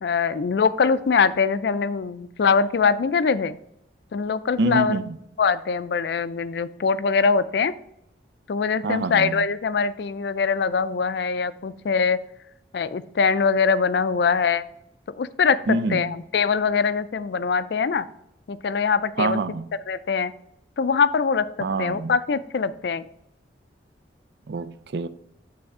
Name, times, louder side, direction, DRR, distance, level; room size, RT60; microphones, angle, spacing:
voice 1, 0.0-3.6 4.1-5.0 5.4-7.7 8.5-12.2 12.7-14.6 15.1-18.1 18.5-19.4 19.9-20.3 20.8-23.1, left 5 dB, 65° left, 0.4 m, -23 dB
voice 2, 4.6-5.2 8.8-9.4 15.7-16.1 19.2-19.7 21.6-22.1 24.5-25.1, right 3 dB, 65° right, 0.4 m, -26 dB
8.6 x 3.4 x 4.8 m
head